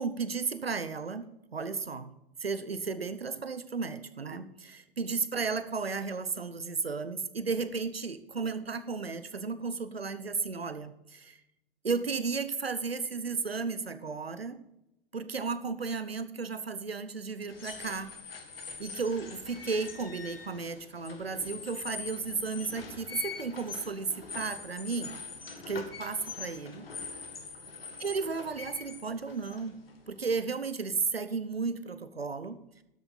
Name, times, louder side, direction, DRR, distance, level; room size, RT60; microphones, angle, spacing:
voice 1, 0.0-2.1 2.4-11.4 11.8-14.6 15.1-18.1 18.8-25.2 25.7-26.9 28.0-29.8 30.1-32.6, right 4 dB, 85° right, 12 dB, 1.1 m, -34 dB
sound 1, 17.5-30.2, left 5 dB, 75° left, 2.1 m, -43 dB
12.5 x 8.2 x 5.6 m, 0.86 s
figure-of-eight pair, 100°, 29 cm